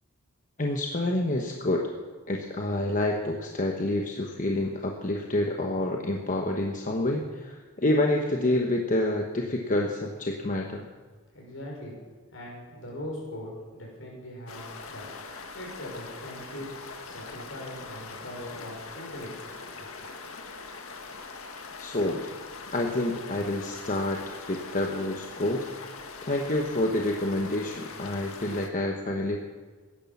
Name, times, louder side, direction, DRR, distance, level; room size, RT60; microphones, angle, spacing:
voice 1, 0.6-1.9 2.3-10.9 21.8-22.3 22.7-25.7 26.2-29.4, left 1 dB, 40° left, 2 dB, 1.1 m, -28 dB
voice 2, 11.3-12.0 12.3-16.7 17.1-19.9, left 1 dB, 65° left, -2 dB, 6.0 m, -41 dB
sound 1, 14.5-28.7, left 4 dB, 80° left, 1.7 m, -42 dB
17.0 x 11.0 x 7.2 m, 1.5 s
head